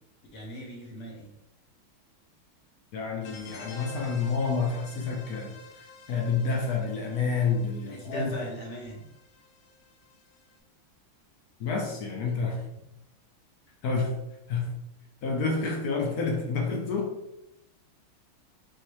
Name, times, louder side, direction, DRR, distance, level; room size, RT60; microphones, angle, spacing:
voice 1, 0.3-1.3 7.9-9.0, equal, 45° left, -1 dB, 1.0 m, -39 dB
voice 2, 2.9-5.5 6.1-8.4 11.6-12.6 13.8-14.2 14.5-14.8 15.2-17.1, left 4 dB, 70° left, 2 dB, 0.9 m, -29 dB
sound 1, 3.2-10.5, left 5 dB, 85° left, 1.5 m, -50 dB
4.4 x 3.7 x 3.1 m, 0.85 s
omnidirectional pair, 2.3 m